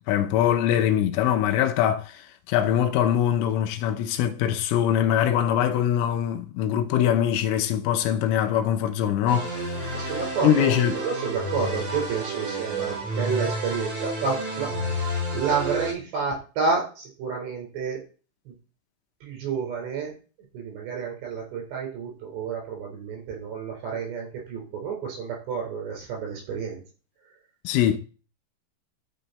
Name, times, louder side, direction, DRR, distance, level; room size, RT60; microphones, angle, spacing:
voice 1, 0.1-11.0 27.6-28.0, left 10 dB, 80° left, 3.3 m, -23 dB
sound 1, 9.3-15.9, right 1 dB, 30° right, 4.8 m, -30 dB
voice 2, 9.9-18.0 18.5-18.6 19.2-20.1 20.5-26.8, right 5 dB, 60° right, 6.1 m, -30 dB
12.0 x 6.5 x 4.1 m
omnidirectional pair, 5.8 m